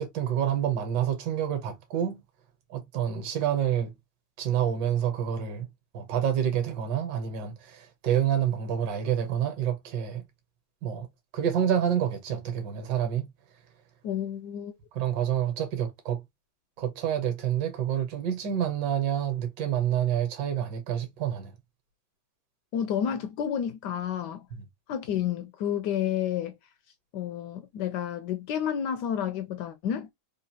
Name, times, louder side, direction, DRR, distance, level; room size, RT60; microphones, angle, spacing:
voice 1, 0.0-2.2 2.7-3.9 4.4-5.7 5.9-10.2 10.8-11.1 11.3-13.3 14.9-16.2 16.8-21.5 24.5-24.6, right 9 dB, 65° right, 1.6 m, -28 dB
voice 2, 14.0-14.7 22.7-24.5 24.9-26.5 27.1-30.1, left 9 dB, 75° left, 1.0 m, -30 dB
3.9 x 2.4 x 2.8 m
omnidirectional pair, 2.2 m